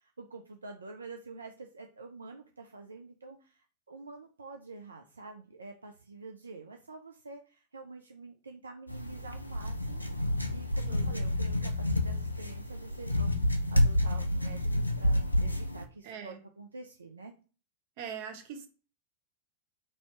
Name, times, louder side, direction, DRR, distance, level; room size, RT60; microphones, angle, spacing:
voice 1, 0.0-10.1 10.5-17.3, right 3 dB, 75° right, 3 dB, 0.3 m, -47 dB
sound 1, 8.9-15.8, left 1 dB, 85° left, 0.4 m, -29 dB
voice 2, 10.9-11.2 16.0-16.4 18.0-18.7, right 7 dB, 50° right, 4 dB, 0.7 m, -42 dB
3.0 x 2.7 x 4.4 m, 0.36 s
figure-of-eight pair, 90°, 0 cm